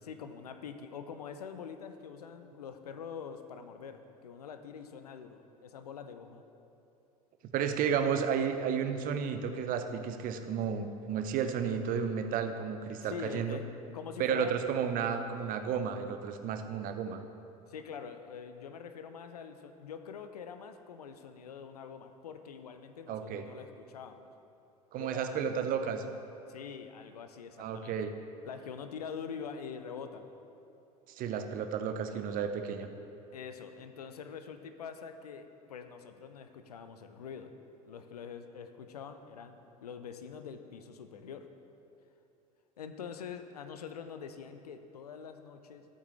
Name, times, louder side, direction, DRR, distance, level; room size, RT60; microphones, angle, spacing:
voice 1, 0.0-6.4 13.0-13.6 13.9-14.6 17.7-24.3 24.9-25.5 26.5-28.0 28.4-30.3 33.3-37.5 37.8-41.5 42.8-45.9, left 6 dB, 80° left, 8 dB, 0.6 m, -45 dB
voice 2, 7.5-13.6 14.2-17.2 23.1-23.5 24.9-26.0 27.6-28.1 31.2-32.9, right 7 dB, 45° right, 8 dB, 0.8 m, -32 dB
13.5 x 8.3 x 3.2 m, 2.7 s
hypercardioid pair, 70°, 19 cm